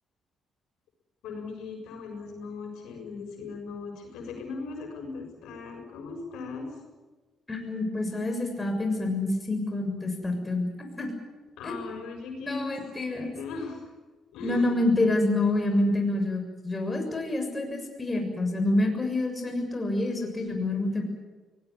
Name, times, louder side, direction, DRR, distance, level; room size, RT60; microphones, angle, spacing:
voice 1, 1.2-6.7 11.6-13.8 14.3-14.7, left 4 dB, 90° left, 3 dB, 6.7 m, -38 dB
voice 2, 7.5-11.1 11.6-11.8 12.4-13.3 14.4-21.0, left 2 dB, 20° left, 3 dB, 6.9 m, -27 dB
23.5 x 19.0 x 9.9 m, 1.3 s
cardioid pair, 90°, 0 cm